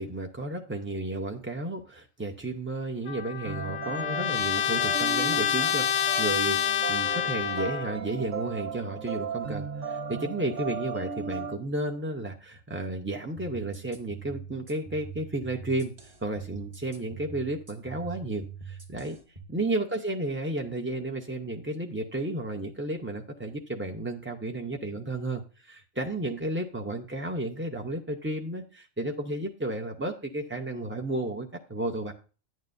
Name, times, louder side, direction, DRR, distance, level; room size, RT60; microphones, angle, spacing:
voice 1, 0.0-19.2 19.5-32.1, right 2 dB, 15° right, 2 dB, 0.4 m, -33 dB
Trumpet, 3.1-7.9, left 9 dB, 80° left, 1.0 m, -27 dB
sound 1, 3.4-11.6, right 5 dB, 65° right, 1.7 m, -36 dB
sound 2, 13.4-19.4, right 6 dB, 30° right, 1.4 m, -43 dB
11.0 x 9.3 x 2.6 m, 0.34 s
omnidirectional pair, 1.4 m